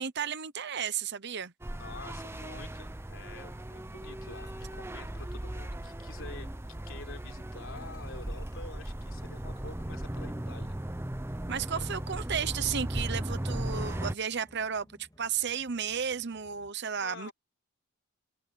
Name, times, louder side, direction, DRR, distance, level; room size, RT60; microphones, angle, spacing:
voice 1, 0.0-1.5 11.5-14.9 15.2-17.3, right 7 dB, 50° right, 0.9 m, -33 dB
sound 1, 1.6-14.2, right 1 dB, 10° right, 0.6 m, -37 dB
voice 2, 1.7-6.5 6.9-10.8 11.7-11.8 16.9-17.3, left 3 dB, 60° left, 4.4 m, -48 dB
sound 2, 2.0-16.7, left 1 dB, 15° left, 3.6 m, -61 dB
head